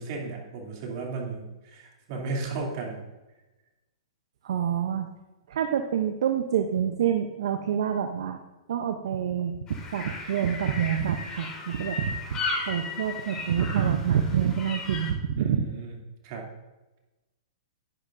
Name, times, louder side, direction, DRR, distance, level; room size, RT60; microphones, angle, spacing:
voice 1, 0.0-3.1 15.4-16.0 16.2-16.5, right 3 dB, 50° right, -1 dB, 2.7 m, -35 dB
voice 2, 4.4-5.1 5.5-8.4 8.7-12.4 12.7-15.7, right 8 dB, 65° right, 7 dB, 0.7 m, -27 dB
sound 1, 9.7-15.1, left 4 dB, 20° left, 2.2 m, -35 dB
11.0 x 10.5 x 2.6 m, 1.1 s
hypercardioid pair, 125°, 3 cm